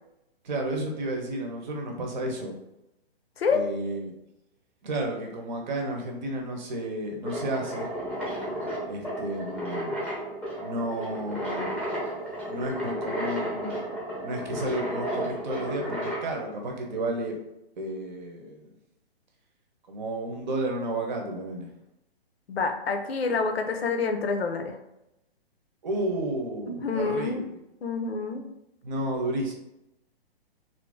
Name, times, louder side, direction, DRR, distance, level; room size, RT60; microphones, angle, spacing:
voice 1, 0.4-2.5 3.5-4.1 4.8-7.9 8.8-10.0 10.6-11.7 12.5-13.8 14.2-17.4 17.8-18.7 19.9-21.7 25.8-27.5 28.8-29.5, right 1 dB, 45° right, 2 dB, 0.8 m, -32 dB
sound 1, 7.2-16.3, equal, 5° right, 0.8 m, -33 dB
voice 2, 22.5-24.8 26.6-27.4 27.8-28.4, left 4 dB, 75° left, 5 dB, 0.6 m, -27 dB
2.7 x 2.6 x 3.5 m, 0.88 s
figure-of-eight pair, 130°, 31 cm